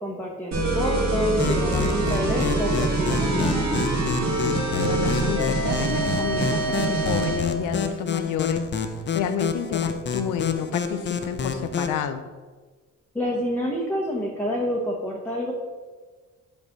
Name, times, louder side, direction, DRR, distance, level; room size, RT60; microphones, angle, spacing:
voice 1, 0.0-3.6 13.1-15.5, equal, 5° left, -3 dB, 1.0 m, -28 dB
sound 1, 0.5-7.4, right 2 dB, 65° right, 2.0 m, -24 dB
sound 2, 1.4-12.0, left 5 dB, 35° left, 0.7 m, -29 dB
voice 2, 4.3-8.7 9.1-12.3, left 8 dB, 85° left, 10 dB, 0.6 m, -30 dB
5.2 x 4.0 x 5.9 m, 1.4 s
cardioid pair, 90°, 30 cm